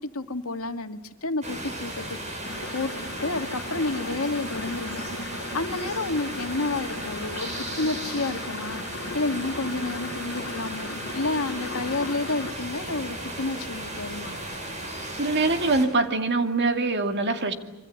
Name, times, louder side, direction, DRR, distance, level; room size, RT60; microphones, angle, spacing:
voice 1, 0.1-2.2 2.7-2.9 3.2-14.3, left 2 dB, 90° left, 6 dB, 2.0 m, -30 dB
sound 1, 1.4-15.9, right 1 dB, 35° right, 6.8 m, -35 dB
sound 2, 2.4-12.5, left 3 dB, 55° left, 1.5 m, -38 dB
voice 2, 15.1-17.5, right 3 dB, 55° right, 6 dB, 2.4 m, -23 dB
26.0 x 25.0 x 7.9 m, 1.2 s
head